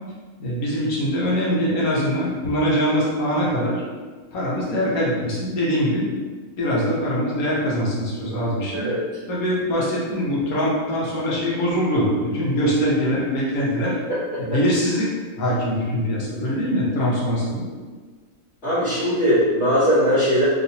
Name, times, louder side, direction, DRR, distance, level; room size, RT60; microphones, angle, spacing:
voice 1, 0.4-3.8 4.3-6.1 6.6-8.9 9.3-14.0 14.4-15.1 15.4-17.6, equal, 70° left, -5 dB, 1.3 m, -23 dB
voice 2, 18.6-20.4, equal, 50° left, -15 dB, 1.3 m, -19 dB
3.1 x 2.9 x 2.7 m, 1.4 s
omnidirectional pair, 1.6 m